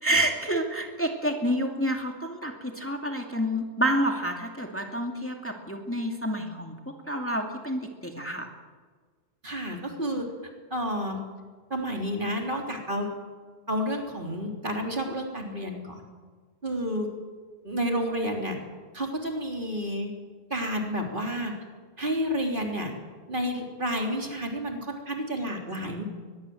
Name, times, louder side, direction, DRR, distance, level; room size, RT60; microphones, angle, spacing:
voice 1, 0.0-6.7 7.1-8.5, right 1 dB, 10° left, 2 dB, 2.5 m, -28 dB
voice 2, 9.4-10.3 10.7-11.2 11.7-13.1 13.7-16.0 16.6-17.1 17.6-18.6 18.9-20.2 20.5-21.5 22.0-22.9 23.3-26.0, equal, 50° right, 2 dB, 3.7 m, -30 dB
22.5 x 21.5 x 7.9 m, 1.5 s
omnidirectional pair, 1.1 m